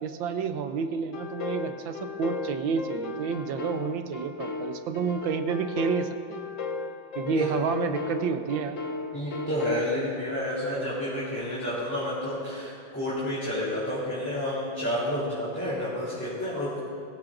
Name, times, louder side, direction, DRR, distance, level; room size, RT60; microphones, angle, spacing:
voice 1, 0.0-6.4 7.1-8.8, right 6 dB, 75° right, 8 dB, 1.5 m, -30 dB
sound 1, 1.1-9.9, left 4 dB, 60° left, 0.8 m, -36 dB
voice 2, 9.1-16.8, equal, 5° left, -10 dB, 3.3 m, -30 dB
22.0 x 16.5 x 2.6 m, 2.5 s
omnidirectional pair, 2.2 m